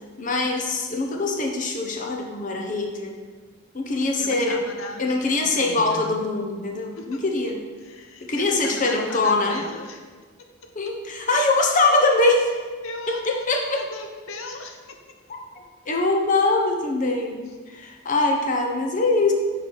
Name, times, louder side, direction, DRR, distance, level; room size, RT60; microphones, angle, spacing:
voice 1, 0.2-3.1 3.7-4.6 5.0-7.6 8.2-9.6 10.8-12.5 13.1-13.8 15.3-15.4 15.9-19.3, left 2 dB, 40° left, 2 dB, 0.7 m, -23 dB
voice 2, 4.0-6.2 7.0-7.2 7.8-10.0 12.8-14.8 17.5-17.6, left 2 dB, 80° left, 4 dB, 0.8 m, -38 dB
5.8 x 4.7 x 5.0 m, 1.4 s
head